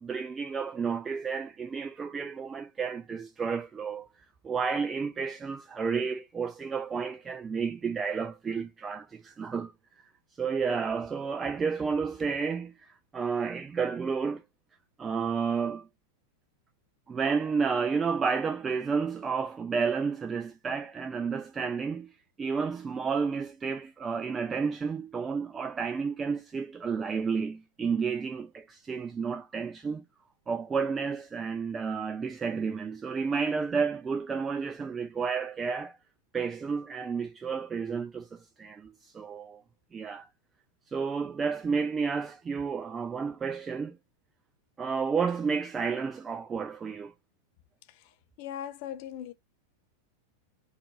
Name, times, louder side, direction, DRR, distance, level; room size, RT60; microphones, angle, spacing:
voice 1, 0.0-4.1 4.4-9.7 10.4-14.4 15.0-15.9 17.1-22.1 22.4-30.0 30.5-35.9 36.3-39.6 39.9-40.3 40.9-44.0 44.8-47.1, right 5 dB, 20° right, 0.3 m, -31 dB
voice 2, 47.9-49.3, left 10 dB, 45° left, 0.5 m, -40 dB
4.3 x 2.5 x 2.8 m
figure-of-eight pair, 90°, 0 cm